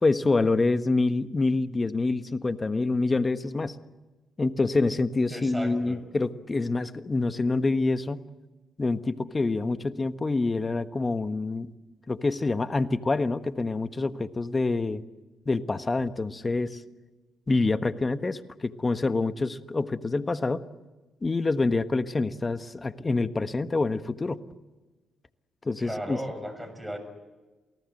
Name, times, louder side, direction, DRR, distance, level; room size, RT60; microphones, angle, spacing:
voice 1, 0.0-3.8 4.4-8.2 8.8-11.7 12.1-15.0 15.5-16.8 17.5-20.7 21.2-24.4 25.6-26.2, left 3 dB, 30° left, 11 dB, 1.4 m, -26 dB
voice 2, 5.3-6.0 25.8-27.0, right 1 dB, 10° right, 9 dB, 7.1 m, -36 dB
28.5 x 18.5 x 7.9 m, 1.2 s
supercardioid pair, 55°, 0 cm